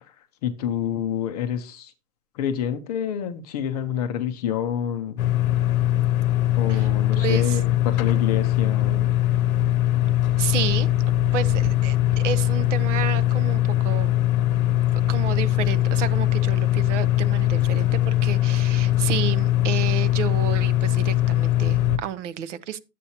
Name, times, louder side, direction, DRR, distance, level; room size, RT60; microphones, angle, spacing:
voice 1, 0.4-1.9 2.3-5.2 6.6-9.1, left 9 dB, 25° left, 0.6 m, -28 dB
sound 1, 5.2-22.0, left 13 dB, 60° left, 0.9 m, -21 dB
voice 2, 6.7-7.6 10.4-10.9 11.3-14.2 15.1-22.8, right 10 dB, 50° right, 0.8 m, -31 dB
11.5 x 8.3 x 2.8 m
hypercardioid pair, 150°, 49 cm